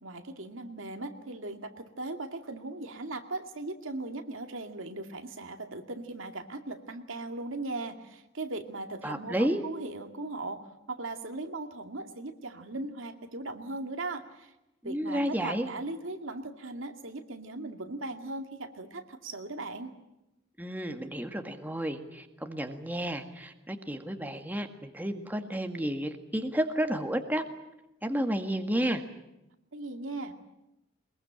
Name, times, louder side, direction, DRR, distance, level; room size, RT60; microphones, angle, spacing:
voice 1, 0.0-10.6 10.9-14.5 14.8-19.9 29.7-30.3, right 2 dB, 70° right, 6 dB, 2.3 m, -38 dB
voice 2, 9.0-9.6 14.8-15.7 20.6-27.4 28.0-29.0, equal, 10° right, 5 dB, 1.7 m, -31 dB
22.5 x 21.5 x 8.8 m, 0.92 s
head